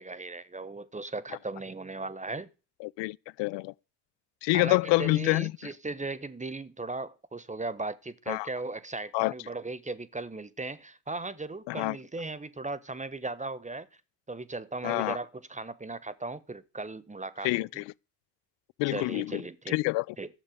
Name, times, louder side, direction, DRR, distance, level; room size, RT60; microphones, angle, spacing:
voice 1, 0.0-2.5 4.5-13.9 14.3-17.5 18.9-19.8 20.2-20.3, right 3 dB, 15° right, 1.0 m, -37 dB
voice 2, 2.8-3.7 4.4-5.5 8.3-8.5 9.1-9.3 11.7-12.0 14.8-15.2 17.4-17.9 18.8-19.4 19.7-20.2, left 23 dB, 65° left, 0.5 m, -27 dB
12.5 x 7.3 x 5.0 m
hypercardioid pair, 45°, 46 cm